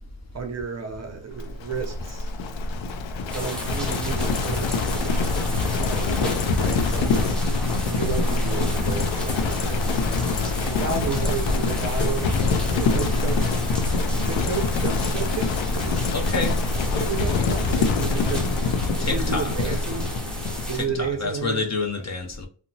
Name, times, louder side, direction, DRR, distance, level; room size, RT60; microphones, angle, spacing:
voice 1, 0.3-2.3 3.3-5.2 5.8-7.4 7.9-9.8 10.7-12.3 12.7-13.4 14.2-16.1 17.0-18.5 19.0-20.1 20.7-21.7, right 6 dB, 35° right, 0.5 m, -32 dB
Livestock farm animals working animals, 1.4-21.0, left 3 dB, 80° left, 0.5 m, -25 dB
sound 1, 3.3-20.8, right 1 dB, ahead, 0.7 m, -35 dB
voice 2, 16.1-16.6 19.0-19.8 20.7-22.5, left 3 dB, 35° left, 0.6 m, -28 dB
2.8 x 2.1 x 2.6 m
cardioid pair, 115°, 45 cm